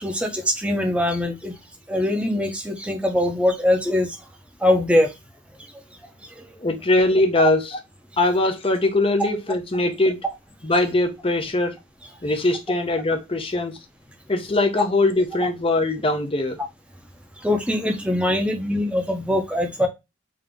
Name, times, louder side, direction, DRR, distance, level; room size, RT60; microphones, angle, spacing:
voice 1, 0.0-1.5 1.9-4.1 4.6-5.1 9.2-9.3 17.4-19.9, left 1 dB, 5° right, 0.7 m, -22 dB
voice 2, 6.6-7.8 8.2-10.2 10.6-11.7 12.2-13.7 14.3-16.6, left 2 dB, 30° left, 0.7 m, -21 dB
3.7 x 2.8 x 3.5 m
head